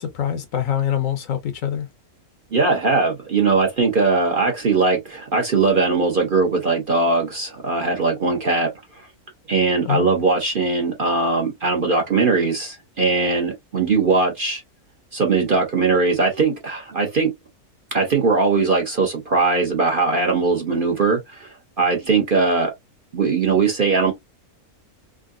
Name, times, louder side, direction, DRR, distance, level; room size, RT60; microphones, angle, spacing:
voice 1, 0.0-1.9 9.8-10.1, left 10 dB, 65° left, 1.1 m, -24 dB
voice 2, 2.5-8.7 9.5-14.6 15.1-17.3 17.9-22.7 23.1-24.1, right 4 dB, 45° right, 0.8 m, -20 dB
3.6 x 2.2 x 2.4 m
omnidirectional pair, 1.6 m